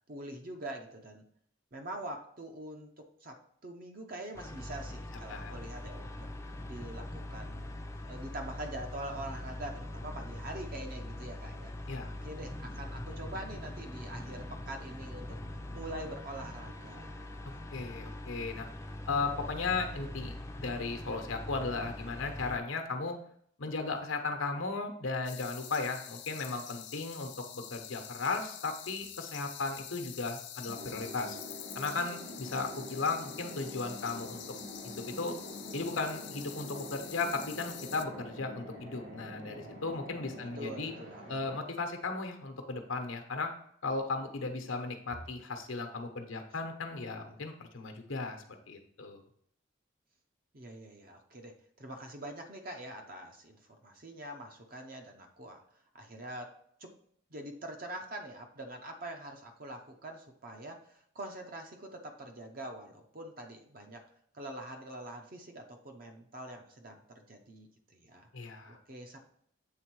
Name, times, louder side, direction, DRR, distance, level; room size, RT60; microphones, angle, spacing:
voice 1, 0.1-1.2 1.7-6.2 6.7-11.7 12.2-15.4 15.7-17.2 40.6-41.4 50.5-55.6 55.9-56.5 56.8-56.9 57.3-64.0 64.3-69.2, right 1 dB, 45° right, 4 dB, 0.8 m, -44 dB
sound 1, 4.3-22.6, left 1 dB, 15° left, 0.5 m, -42 dB
voice 2, 5.3-5.6 11.9-12.1 17.7-18.7 19.1-23.2 23.6-31.4 31.7-34.4 34.8-35.3 35.7-40.9 41.3-43.5 43.8-49.2 68.3-68.8, left 3 dB, 80° left, 5 dB, 1.0 m, -36 dB
sound 2, 25.2-38.0, left 11 dB, 60° left, 0.5 m, -47 dB
sound 3, 30.7-41.6, equal, 70° right, 2.5 m, -46 dB
7.8 x 3.6 x 4.6 m, 0.66 s
head